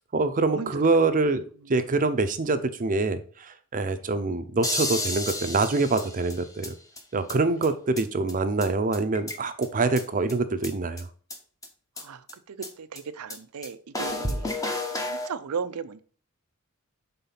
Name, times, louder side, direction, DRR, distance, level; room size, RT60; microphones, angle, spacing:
voice 1, 0.1-1.4 1.7-6.7 7.1-11.1, right 3 dB, 35° right, 0.6 m, -25 dB
sound 1, 4.6-6.7 7.0-7.1 7.3-7.4 7.6-7.7 8.0-8.1 8.3-8.4 8.6-8.7 8.9-9.7 10.0-10.1 10.3-10.4 10.6-10.7 11.0-11.1 11.3-11.4 11.6-11.7 12.0-12.1 12.3-12.4 12.6-12.7 13.0-13.1 13.3-13.4 13.6-13.7 13.9-15.3, left 1 dB, 15° left, 0.9 m, -31 dB
voice 2, 12.0-14.5 15.1-16.0, right 6 dB, 80° right, 0.5 m, -36 dB
5.5 x 3.8 x 5.8 m
head